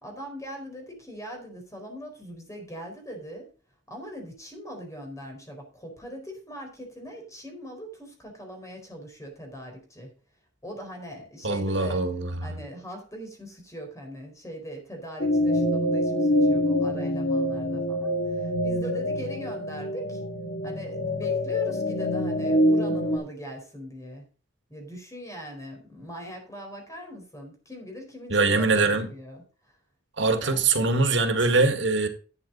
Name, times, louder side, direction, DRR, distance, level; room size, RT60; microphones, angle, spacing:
voice 1, 0.0-3.5 3.9-10.1 10.6-12.0 12.4-20.2 20.6-24.2 24.7-29.8 30.4-30.6, equal, 15° left, 4.4 m, -41 dB
voice 2, 11.4-12.6 28.3-29.1 30.2-32.1, right 3 dB, 85° right, 1.9 m, -23 dB
sound 1, 15.2-23.2, left 1 dB, 55° left, 2.3 m, -25 dB
12.0 x 8.2 x 4.0 m
head